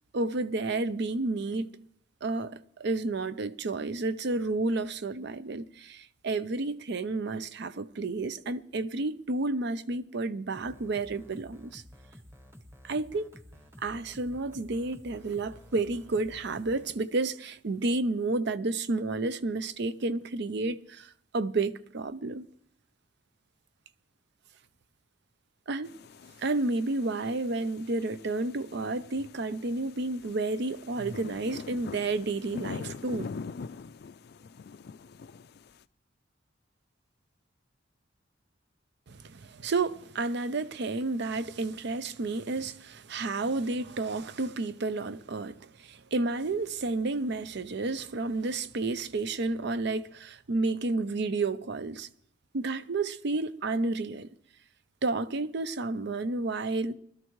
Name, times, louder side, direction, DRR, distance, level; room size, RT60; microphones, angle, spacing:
voice 1, 0.1-1.7 2.2-11.8 12.8-13.3 13.8-22.4 25.7-25.9 26.4-33.3 39.1-52.1 52.5-54.3 55.0-56.9, right 3 dB, 65° right, 0.6 m, -31 dB
sound 1, 10.5-16.9, equal, 15° right, 1.1 m, -52 dB
sound 2, 25.8-35.8, left 4 dB, 55° left, 0.4 m, -44 dB
20.0 x 12.5 x 3.1 m
head